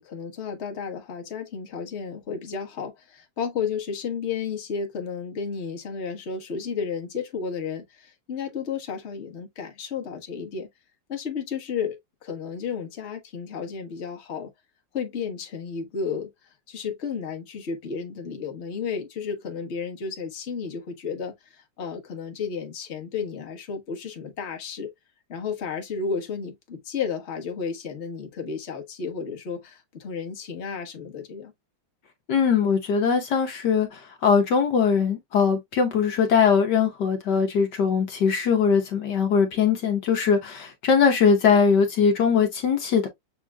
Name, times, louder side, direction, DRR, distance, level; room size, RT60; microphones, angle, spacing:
voice 1, 0.0-10.7 11.1-14.5 14.9-16.3 16.7-24.9 25.3-31.5, left 6 dB, 40° left, 1.4 m, -32 dB
voice 2, 32.3-43.1, left 6 dB, 70° left, 1.5 m, -21 dB
7.1 x 3.0 x 2.2 m
omnidirectional pair, 2.0 m